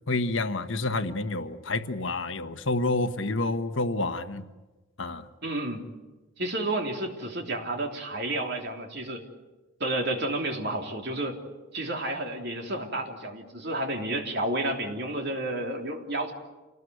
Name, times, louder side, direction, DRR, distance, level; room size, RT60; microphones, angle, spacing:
voice 1, 0.1-4.4 5.0-5.2, left 2 dB, 65° left, 9 dB, 1.2 m, -28 dB
voice 2, 5.4-5.8 6.4-9.2 9.8-11.4 11.7-16.3, right 1 dB, 50° right, 2 dB, 3.3 m, -31 dB
28.0 x 19.0 x 8.1 m, 1.2 s
head